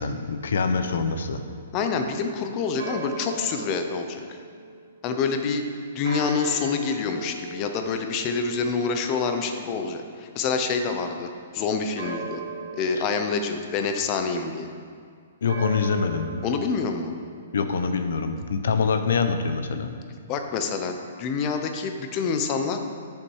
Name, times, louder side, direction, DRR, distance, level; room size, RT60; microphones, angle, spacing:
voice 1, 0.0-1.4 15.4-16.4 17.5-19.9, left 5 dB, 75° left, 8 dB, 0.8 m, -25 dB
sound 1, 0.6-5.2 6.0-10.9 12.0-14.4 15.5-17.9, right 3 dB, 65° right, 1.3 m, -40 dB
voice 2, 1.7-4.4 5.0-5.7 5.9-12.4 12.7-14.7 16.4-17.1 20.3-22.8, left 5 dB, 25° left, 6 dB, 0.6 m, -27 dB
8.4 x 6.9 x 4.7 m, 2.1 s
hypercardioid pair, 170°, 0 cm